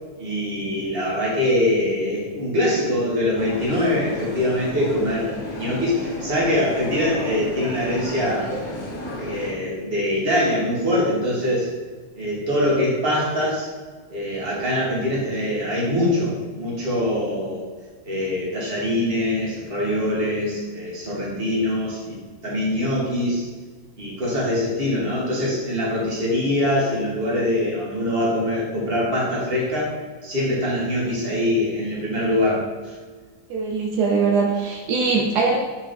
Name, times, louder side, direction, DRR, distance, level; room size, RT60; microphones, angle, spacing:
voice 1, 0.2-8.5 9.2-11.7 12.2-13.7 14.1-17.7 18.0-23.4 24.0-29.9 30.2-33.0, left 1 dB, 35° right, -5 dB, 1.9 m, -23 dB
sound 1, 3.3-9.5, left 1 dB, 80° left, 2.0 m, -33 dB
voice 2, 33.5-35.6, right 4 dB, 80° right, 0 dB, 1.3 m, -21 dB
5.9 x 3.9 x 5.3 m, 1.4 s
omnidirectional pair, 1.7 m